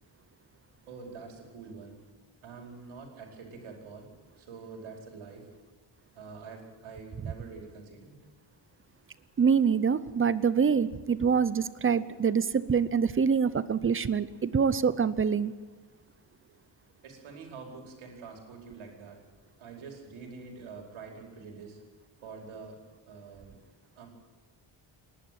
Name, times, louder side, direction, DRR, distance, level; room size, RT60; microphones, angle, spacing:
voice 1, 0.9-2.0 2.4-4.1 4.4-5.5 6.1-8.2 17.0-19.2 19.6-21.8 22.2-22.8 23.0-23.6 24.0-24.1, right 4 dB, 85° right, 2 dB, 4.8 m, -46 dB
voice 2, 9.4-15.5, right 6 dB, 25° right, 16 dB, 0.6 m, -25 dB
28.0 x 11.5 x 9.4 m, 1.3 s
wide cardioid pair, 165°, 47 cm